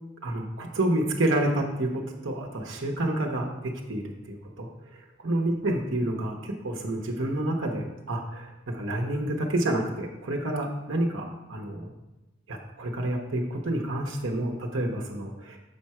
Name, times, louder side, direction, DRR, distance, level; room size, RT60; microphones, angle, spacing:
voice 1, 0.2-4.0 4.3-11.9 12.5-15.6, right 1 dB, 90° right, 1 dB, 1.0 m, -29 dB
7.0 x 4.7 x 4.3 m, 1.0 s
head